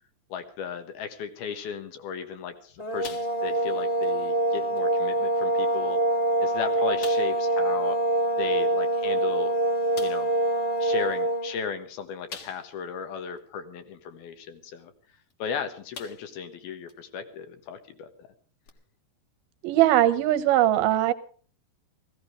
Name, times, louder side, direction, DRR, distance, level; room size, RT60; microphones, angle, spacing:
voice 1, 0.3-6.0 6.4-8.0 8.4-9.5 10.0-10.3 10.8-14.9 15.4-18.1, left 6 dB, 70° left, 8 dB, 3.1 m, -36 dB
sound 1, 2.8-11.5, right 1 dB, 15° left, 1.4 m, -25 dB
sound 2, 3.0-3.7 4.0-4.2 4.8-4.9 5.7-5.8 6.2-6.3 7.0-7.4 9.1-9.2 9.9-10.3 12.3-12.9 13.4-13.5 15.3-15.5 15.9-16.4 16.9-17.0 18.6-18.7, left 5 dB, 55° left, 1.6 m, -43 dB
voice 2, 19.6-21.1, right 13 dB, 75° right, 11 dB, 2.6 m, -20 dB
16.5 x 16.0 x 4.9 m, 0.42 s
omnidirectional pair, 4.7 m